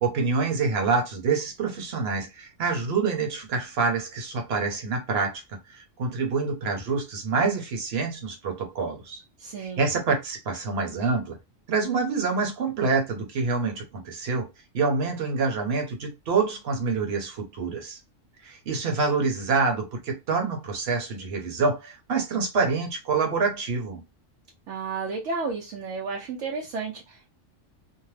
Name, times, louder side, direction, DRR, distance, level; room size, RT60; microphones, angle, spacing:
voice 1, 0.0-5.4 5.7-9.2 9.6-11.4 11.7-14.5 14.7-18.0 18.4-24.0, right 4 dB, 55° right, 1.1 m, -26 dB
voice 2, 9.4-9.8 24.7-27.3, right 4 dB, 75° right, 1.0 m, -32 dB
2.7 x 2.1 x 3.1 m
omnidirectional pair, 1.3 m